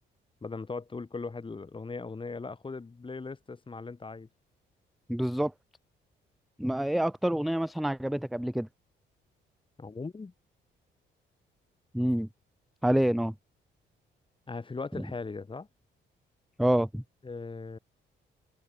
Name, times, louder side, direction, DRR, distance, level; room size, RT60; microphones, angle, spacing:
voice 1, 0.4-4.3 9.8-10.3 14.5-15.7 17.2-17.8, left 4 dB, 25° left, 2.6 m, -39 dB
voice 2, 5.1-5.5 6.6-8.7 11.9-12.3 12.8-13.3 15.0-15.1 16.6-17.0, right 1 dB, ahead, 0.4 m, -27 dB
cardioid pair, 90°, 20 cm